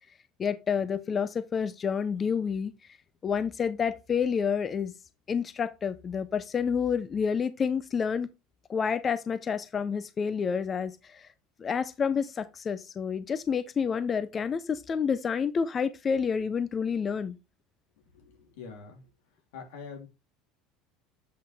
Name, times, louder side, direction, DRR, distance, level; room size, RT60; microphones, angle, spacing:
voice 1, 0.4-2.7 3.2-4.9 5.3-8.3 8.7-11.3 11.6-17.4, left 6 dB, 20° left, 0.4 m, -29 dB
voice 2, 18.1-19.0 19.5-20.1, left 5 dB, 90° left, 3.1 m, -44 dB
7.6 x 5.4 x 3.4 m
cardioid pair, 170°, 0 cm